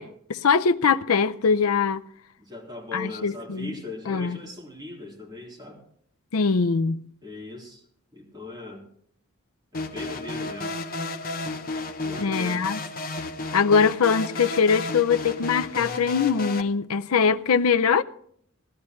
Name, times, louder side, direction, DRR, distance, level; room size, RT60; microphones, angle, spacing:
voice 1, 0.3-2.0 2.9-3.7 4.1-4.4 6.3-7.0 12.2-12.8 13.5-18.0, left 5 dB, 85° left, 0.6 m, -22 dB
voice 2, 2.4-5.8 7.2-7.8 8.1-8.9 9.7-10.8 12.0-12.7, left 2 dB, 20° right, 3.5 m, -39 dB
sound 1, 9.7-16.6, left 3 dB, 40° left, 1.0 m, -32 dB
18.5 x 12.5 x 3.2 m
head